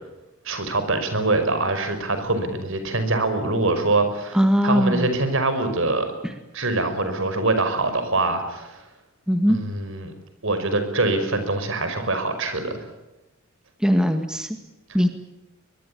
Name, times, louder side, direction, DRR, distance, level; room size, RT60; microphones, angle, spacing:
voice 1, 0.5-6.1 6.5-8.8 9.5-10.1 10.4-12.8, right 2 dB, 65° right, 9 dB, 5.3 m, -24 dB
voice 2, 4.3-5.1 9.3-9.6 13.8-14.5 14.9-15.1, equal, 5° right, 6 dB, 1.9 m, -19 dB
24.0 x 22.0 x 8.7 m, 0.99 s
head